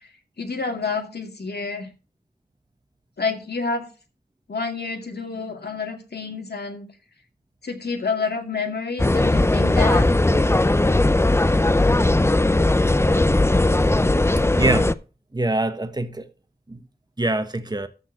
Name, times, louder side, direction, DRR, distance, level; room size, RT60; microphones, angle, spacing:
voice 1, 0.4-1.9 3.2-3.9 4.5-6.8 7.6-10.0, left 4 dB, 75° left, 2.2 m, -28 dB
sound 1, 9.0-14.9, left 2 dB, 15° left, 0.5 m, -18 dB
voice 2, 14.6-14.9 15.3-16.2 16.7-16.8 17.2-17.9, right 2 dB, 25° right, 1.3 m, -24 dB
13.5 x 4.5 x 6.1 m
wide cardioid pair, 55°, 17 cm